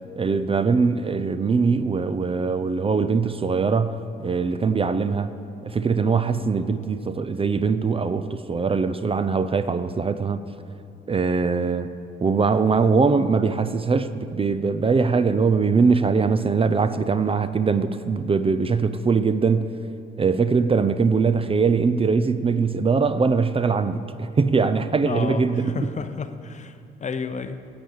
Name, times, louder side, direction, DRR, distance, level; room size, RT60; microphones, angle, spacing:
voice 1, 0.2-5.3 5.6-10.4 11.1-11.9 12.2-19.7 20.2-25.9, right 5 dB, 30° right, 0.5 m, -22 dB
voice 2, 25.0-27.7, left 5 dB, 35° left, 0.7 m, -31 dB
10.0 x 8.7 x 7.9 m
cardioid pair, 90°, 20 cm